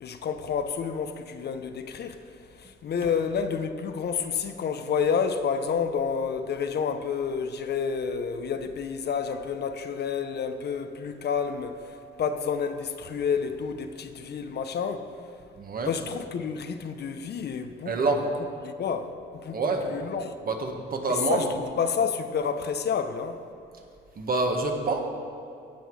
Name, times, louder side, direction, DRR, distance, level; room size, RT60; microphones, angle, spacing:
voice 1, 0.0-2.2 2.6-15.1 15.8-18.0 18.6-20.4 21.1-21.5 21.8-23.4, left 6 dB, 55° left, 0.8 m, -29 dB
voice 2, 15.6-15.9 17.8-18.3 19.5-19.9 20.4-21.5 24.2-25.0, right 3 dB, 45° right, 1.6 m, -27 dB
17.0 x 6.0 x 4.8 m
cardioid pair, 90°, 20 cm